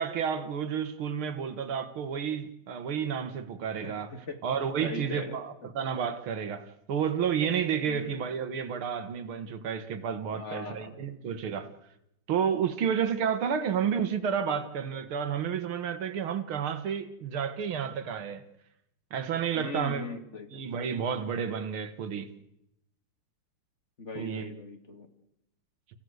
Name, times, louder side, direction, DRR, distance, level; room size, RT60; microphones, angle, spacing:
voice 1, 0.0-4.1 4.4-11.7 12.3-18.4 19.1-20.1 20.5-22.3 24.1-24.5, right 7 dB, 80° right, 2.2 m, -31 dB
voice 2, 3.8-4.4 4.8-5.4 7.9-8.2 10.3-10.9 19.5-20.6 24.0-25.1, left 3 dB, 35° left, 2.2 m, -39 dB
29.5 x 16.0 x 8.0 m
omnidirectional pair, 2.3 m